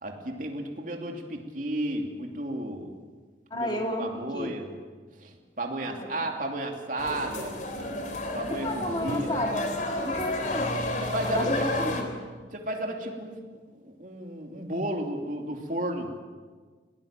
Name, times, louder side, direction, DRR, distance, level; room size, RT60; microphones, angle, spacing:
voice 1, 0.0-3.0 3.5-4.7 5.2-7.5 8.3-9.4 10.4-10.5 11.0-11.6 12.5-13.4 13.8-16.2, right 1 dB, 45° right, 2 dB, 2.8 m, -33 dB
voice 2, 3.5-4.6 5.8-6.3 8.6-9.7 10.0-10.8 11.2-12.1, left 1 dB, 25° left, 1 dB, 2.8 m, -32 dB
sound 1, 7.0-12.0, left 1 dB, 45° left, 3.5 m, -31 dB
21.5 x 18.5 x 8.9 m, 1.4 s
head